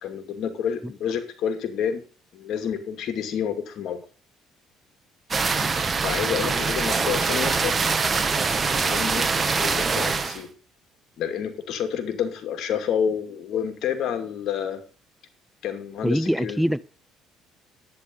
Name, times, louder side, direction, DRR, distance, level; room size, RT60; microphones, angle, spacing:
voice 1, 0.0-2.0 2.3-4.0 5.7-7.8 8.7-10.5 11.2-14.8 15.6-16.6, left 8 dB, 65° left, 2.4 m, -29 dB
sound 1, 5.3-10.4, right 4 dB, 25° right, 1.3 m, -24 dB
voice 2, 16.0-16.8, equal, ahead, 0.7 m, -23 dB
10.5 x 9.4 x 5.4 m
cardioid pair, 110°, 0 cm